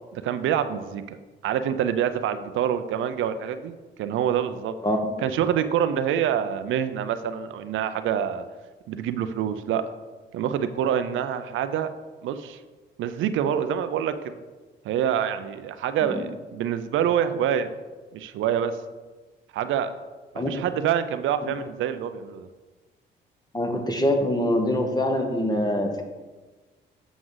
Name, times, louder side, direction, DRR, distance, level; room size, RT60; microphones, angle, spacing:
voice 1, 0.1-1.2 1.4-4.7 5.2-8.4 8.9-9.8 10.3-11.9 12.2-12.6 13.0-14.4 14.8-17.7 18.1-18.8 19.5-19.9 20.5-22.5, right 9 dB, 80° right, 10 dB, 0.5 m, -26 dB
voice 2, 4.8-5.3 16.1-16.2 20.4-20.5 23.5-26.0, left 1 dB, 20° left, 4 dB, 1.2 m, -24 dB
7.8 x 6.0 x 3.9 m, 1.3 s
cardioid pair, 90°, 20 cm